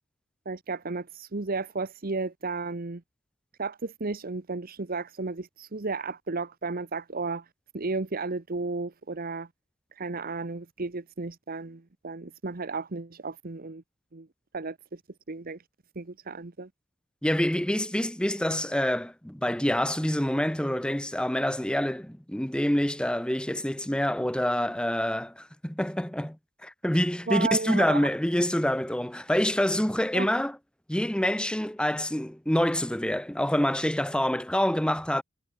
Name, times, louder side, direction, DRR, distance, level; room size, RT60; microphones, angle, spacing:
voice 1, 0.5-3.0 3.6-7.4 7.7-9.5 9.9-13.8 14.1-14.3 14.5-15.0 15.3-15.6 15.9-16.7 27.3-28.1 30.1-30.3, right 3 dB, 50° right, 1.0 m, -33 dB
voice 2, 17.2-26.4 26.6-30.6 30.9-35.2, left 1 dB, 5° left, 1.0 m, -26 dB
head